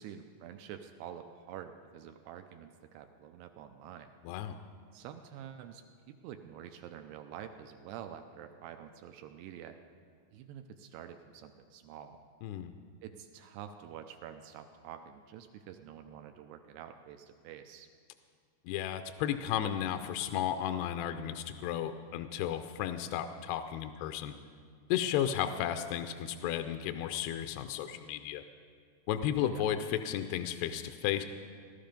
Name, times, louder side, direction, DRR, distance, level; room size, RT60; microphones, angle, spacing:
voice 1, 0.0-4.1 4.9-9.8 10.3-12.2 13.0-17.9 25.6-25.7 29.5-29.7, right 9 dB, 80° right, 7 dB, 2.5 m, -48 dB
voice 2, 4.3-4.6 12.4-12.7 18.7-24.3 24.9-28.4 29.1-31.2, left 10 dB, 80° left, 8 dB, 2.4 m, -33 dB
17.5 x 12.5 x 5.1 m, 2.1 s
omnidirectional pair, 5.0 m